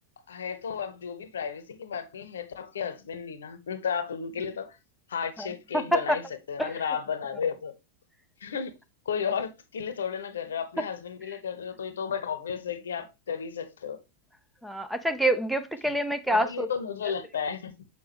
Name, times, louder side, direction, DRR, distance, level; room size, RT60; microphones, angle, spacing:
voice 1, 0.3-4.8 5.1-6.2 6.5-7.8 8.4-8.7 9.1-14.0 16.3-17.8, left 7 dB, 65° left, 0.9 m, -33 dB
voice 2, 5.7-6.2 6.6-6.7 14.6-16.7, right 1 dB, ahead, 0.6 m, -26 dB
6.9 x 5.0 x 3.0 m
figure-of-eight pair, 90°, 0 cm